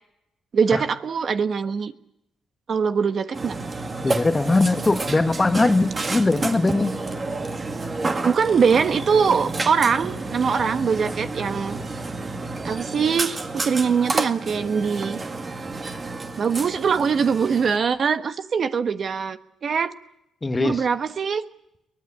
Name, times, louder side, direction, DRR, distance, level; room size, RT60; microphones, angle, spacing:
voice 1, 0.5-1.9 2.7-3.6 8.2-11.8 12.6-15.2 16.4-19.9 20.6-21.4, right 6 dB, 50° right, 9 dB, 1.3 m, -22 dB
Burping eructation, 3.3-17.8, right 3 dB, 30° right, 2.0 m, -30 dB
voice 2, 4.0-7.0 20.4-20.8, left 2 dB, 20° left, 9 dB, 1.4 m, -21 dB
23.0 x 18.5 x 8.5 m, 0.82 s
cardioid pair, 90°, 0 cm